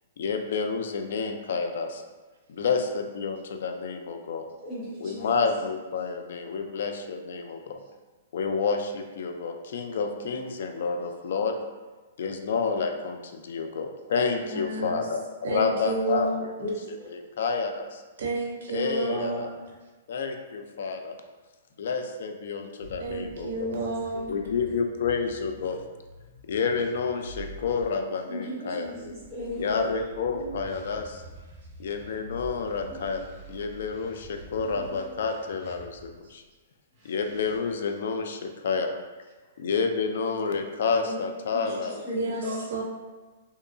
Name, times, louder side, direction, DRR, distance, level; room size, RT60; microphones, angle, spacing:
voice 1, 0.2-2.0 2.5-4.5 5.0-7.8 8.3-11.6 12.2-16.7 17.1-18.0 18.7-19.5 20.1-21.2 21.8-23.7 24.3-25.8 26.5-28.9 29.6-31.2 31.8-36.4 37.0-38.9 39.6-42.0, left 5 dB, 65° left, 5 dB, 0.3 m, -29 dB
voice 2, 4.6-5.4 6.7-6.8 16.6-17.1 23.1-23.3 23.8-24.5 28.3-30.0 41.1-41.2 41.5-42.7, left 1 dB, ahead, -14 dB, 0.7 m, -37 dB
voice 3, 14.4-15.1 15.4-16.4 18.2-19.6 23.0-24.3 28.6-29.0 30.3-30.9 32.9-33.2 34.6-35.1 42.1-42.8, right 3 dB, 70° right, -1 dB, 0.5 m, -32 dB
granular synthesizer ink, 22.8-27.9 28.8-36.2 36.9-37.6, right 1 dB, 30° right, 0.9 m, -47 dB
2.7 x 2.3 x 2.4 m, 1.3 s
hypercardioid pair, 165°, 0 cm